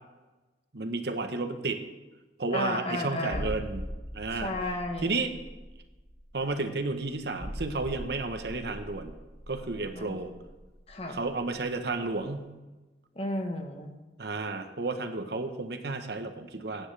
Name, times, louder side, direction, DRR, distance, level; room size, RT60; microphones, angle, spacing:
voice 1, 0.7-1.8 2.4-3.9 4.1-4.5 5.0-5.3 6.3-9.1 9.5-10.3 11.1-12.5 14.2-16.9, right 3 dB, 70° right, 7 dB, 1.1 m, -32 dB
voice 2, 2.5-3.5 4.3-5.1 9.9-10.2 10.9-11.2 13.1-13.9, left 1 dB, 35° left, 4 dB, 1.1 m, -33 dB
sound 1, 3.3-11.7 11.9-12.1, equal, 15° left, 1.2 m, -41 dB
16.0 x 9.6 x 3.4 m, 1.1 s
head